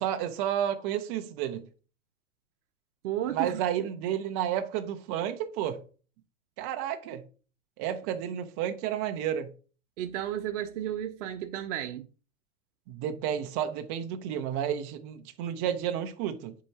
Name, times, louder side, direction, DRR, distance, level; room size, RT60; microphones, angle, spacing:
voice 1, 0.0-1.7 3.3-5.8 6.6-7.2 7.8-9.5 12.9-16.6, right 10 dB, 20° right, 0.5 m, -31 dB
voice 2, 3.0-3.7 10.0-12.0, right 11 dB, 55° right, 0.8 m, -33 dB
10.0 x 4.6 x 2.8 m
hypercardioid pair, 150°, 44 cm